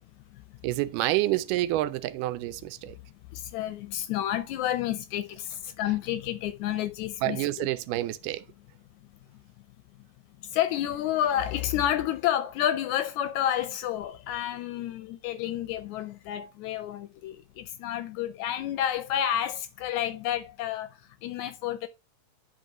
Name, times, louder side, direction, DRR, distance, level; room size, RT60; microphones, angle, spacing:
voice 1, 0.6-3.0 7.2-8.4, right 16 dB, 90° right, 2.2 m, -28 dB
voice 2, 3.3-7.7 10.4-21.9, left 11 dB, 80° left, 1.8 m, -30 dB
10.5 x 4.0 x 2.9 m
omnidirectional pair, 3.7 m